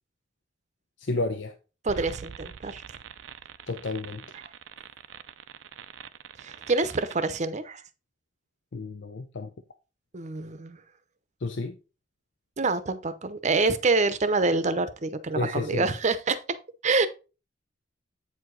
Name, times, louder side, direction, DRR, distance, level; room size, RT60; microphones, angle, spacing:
voice 1, 1.0-1.5 3.7-4.2 8.7-9.5 11.4-11.8 15.4-15.9, left 3 dB, 70° left, 0.7 m, -31 dB
voice 2, 1.8-2.8 6.4-7.8 10.1-10.8 12.6-16.4 16.8-17.1, right 3 dB, 40° right, 0.7 m, -26 dB
sound 1, 1.9-7.4, right 7 dB, 85° right, 0.5 m, -44 dB
8.3 x 4.8 x 3.9 m
head